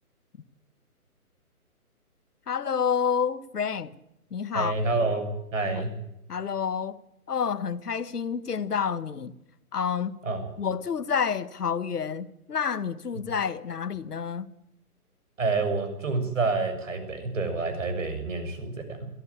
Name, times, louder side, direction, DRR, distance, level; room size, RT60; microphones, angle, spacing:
voice 1, 2.5-4.0 4.3-4.8 5.8-5.9 6.3-7.0 7.3-9.3 9.7-10.1 10.6-14.5, left 7 dB, 85° left, 1.8 m, -29 dB
voice 2, 4.5-5.9 10.2-10.5 15.4-19.1, right 3 dB, 55° right, 7.0 m, -28 dB
22.5 x 15.0 x 8.3 m
hypercardioid pair, 175°, 45 cm